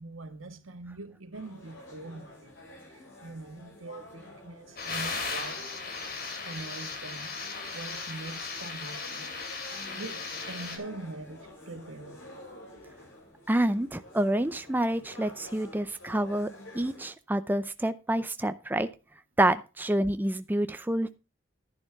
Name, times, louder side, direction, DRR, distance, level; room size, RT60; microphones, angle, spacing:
voice 1, 0.0-2.5 2.9-5.6 6.4-7.3 7.7-9.3 9.9-12.2, right 2 dB, 85° right, 1.7 m, -43 dB
sound 1, 1.3-17.1, left 1 dB, 75° left, 7.8 m, -49 dB
sound 2, 4.8-10.8, left 4 dB, 50° left, 2.8 m, -37 dB
voice 2, 13.5-18.9 19.4-21.2, right 1 dB, 10° right, 0.5 m, -28 dB
11.5 x 10.5 x 3.5 m
head